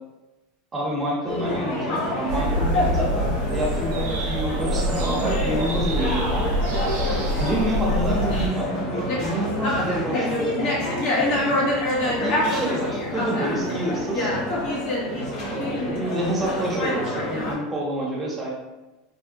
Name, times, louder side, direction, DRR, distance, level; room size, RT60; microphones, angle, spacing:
voice 1, 0.7-6.5 7.1-10.8 12.0-14.4 15.4-18.5, right 1 dB, 20° right, -3 dB, 0.9 m, -28 dB
sound 1, 1.3-17.5, left 1 dB, 55° left, 0.9 m, -26 dB
sound 2, 2.3-8.5, right 1 dB, 80° right, 0.4 m, -26 dB
3.3 x 2.0 x 2.6 m, 1.1 s
supercardioid pair, 130°, 0 cm